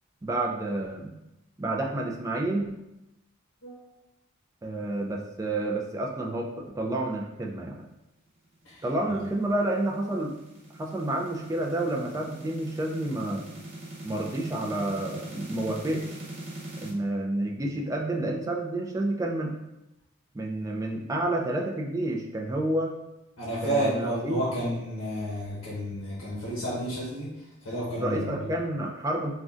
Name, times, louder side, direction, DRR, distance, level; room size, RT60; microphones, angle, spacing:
voice 1, 0.2-1.1 1.6-2.8 4.6-7.7 8.8-10.3 10.8-13.4 14.0-16.2 16.8-19.5 20.3-22.9 23.6-24.4 28.0-29.3, right 1 dB, 15° right, 1 dB, 0.3 m, -29 dB
voice 2, 3.6-4.0 8.6-8.8 23.4-28.5, equal, 70° left, -6 dB, 0.8 m, -31 dB
sound 1, 8.8-16.9, right 1 dB, 45° right, 0.7 m, -42 dB
3.6 x 2.2 x 2.5 m, 0.90 s
head